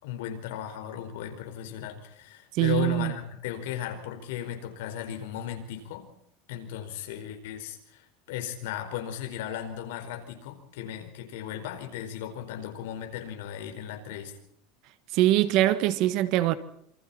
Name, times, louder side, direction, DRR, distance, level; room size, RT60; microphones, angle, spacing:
voice 1, 0.0-6.1 6.5-14.3, left 10 dB, 75° left, 4.9 m, -36 dB
voice 2, 2.5-3.1 15.1-16.5, right 14 dB, 45° right, 1.4 m, -23 dB
27.0 x 25.0 x 4.4 m
supercardioid pair, 175°, 0 cm